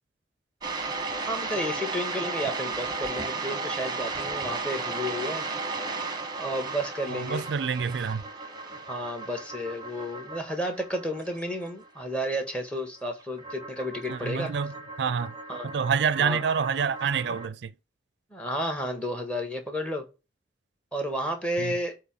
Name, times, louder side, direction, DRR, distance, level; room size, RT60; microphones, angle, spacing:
sound 1, 0.6-17.5, right 3 dB, 25° right, 1.0 m, -35 dB
voice 1, 1.1-5.5 6.4-7.4 8.7-14.5 15.5-15.7 16.2-16.4 18.3-20.1 20.9-21.9, equal, 5° left, 1.5 m, -32 dB
voice 2, 7.1-8.2 14.1-15.3 15.6-17.7 21.6-21.7, right 6 dB, 80° right, 0.4 m, -27 dB
8.2 x 2.9 x 5.5 m
head